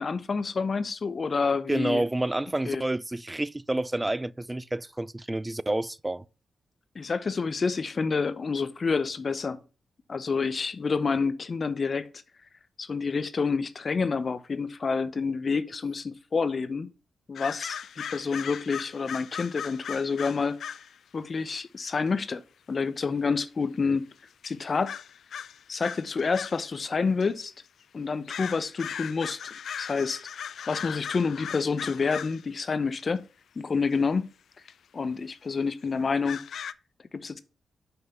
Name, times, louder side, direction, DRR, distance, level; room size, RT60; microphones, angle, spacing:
voice 1, 0.0-2.1 2.6-2.8 6.9-9.6 10.1-12.1 12.8-16.9 17.3-20.6 21.1-22.4 22.7-24.1 24.4-24.9 25.7-27.5 27.9-33.2 33.6-34.3 34.9-36.4 37.1-37.4, left 4 dB, 50° left, 0.7 m, -28 dB
voice 2, 1.7-6.2, right 1 dB, 15° right, 0.4 m, -29 dB
sound 1, 17.4-20.9 22.1-22.2 23.8-23.9 24.4-24.6 24.9-26.7 27.2-27.3 28.3-32.4 33.0-33.1 33.9-34.0 34.7-34.8 35.3-35.4 36.2-36.7, left 8 dB, 80° left, 0.4 m, -38 dB
5.7 x 5.7 x 5.5 m
cardioid pair, 65°, 0 cm